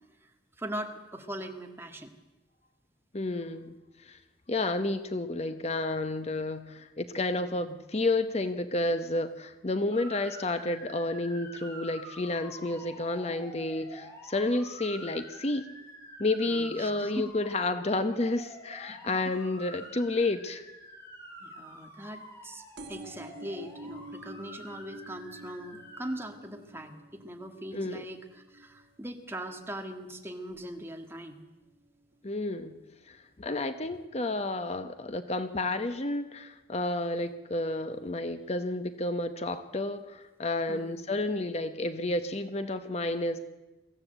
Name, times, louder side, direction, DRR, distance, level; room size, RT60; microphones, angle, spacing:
voice 1, 0.6-2.1 16.5-17.3 19.0-19.1 21.4-31.4 40.7-41.1, right 1 dB, 15° right, 4 dB, 1.8 m, -40 dB
voice 2, 3.1-3.8 4.0-4.2 4.5-15.7 16.2-20.6 27.7-28.0 32.2-32.8 33.1-43.4, left 2 dB, 35° left, 10 dB, 0.9 m, -31 dB
Motor vehicle (road) / Siren, 9.9-26.1, equal, 15° left, 6.7 m, -48 dB
griddle - baking plate - backblech, 22.8-30.0 30.5-30.9 31.8-31.9 32.1-32.2 32.4-32.5, right 1 dB, 80° right, 2.1 m, -49 dB
23.0 x 15.0 x 8.0 m, 1.1 s
head